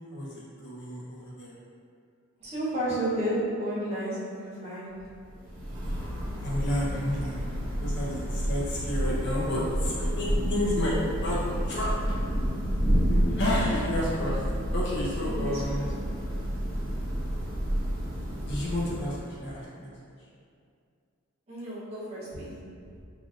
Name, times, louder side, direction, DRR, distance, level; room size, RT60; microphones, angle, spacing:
voice 1, 0.1-1.6 6.4-7.4 7.8-12.2 13.0-14.4 14.7-15.8 18.5-19.9, left 1 dB, 50° left, -7 dB, 0.7 m, -31 dB
voice 2, 2.4-5.0 13.3-13.8 15.3-15.9 21.5-22.5, right 1 dB, 30° right, -10 dB, 0.7 m, -32 dB
Thunder / Rain, 5.2-19.5, equal, 75° right, 1.1 m, -30 dB
3.3 x 2.5 x 2.4 m, 2.3 s
head